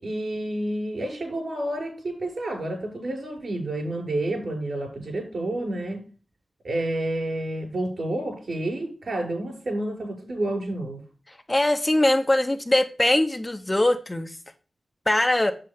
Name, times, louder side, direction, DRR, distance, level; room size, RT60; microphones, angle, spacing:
voice 1, 0.0-6.0 6.6-11.0, right 1 dB, 60° right, 1 dB, 5.3 m, -29 dB
voice 2, 11.3-14.4 15.1-15.5, left 1 dB, 20° left, 6 dB, 0.7 m, -22 dB
8.2 x 7.7 x 3.5 m, 0.37 s
wide cardioid pair, 100°, 0 cm